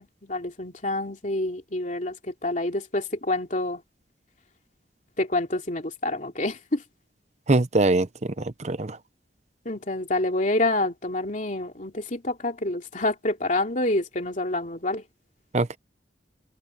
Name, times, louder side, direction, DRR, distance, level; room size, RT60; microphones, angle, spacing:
voice 1, 0.0-3.8 5.2-6.8 9.6-15.0, left 2 dB, 45° left, 2.9 m, -27 dB
voice 2, 7.5-9.0 15.5-15.8, right 2 dB, 40° right, 0.8 m, -23 dB
head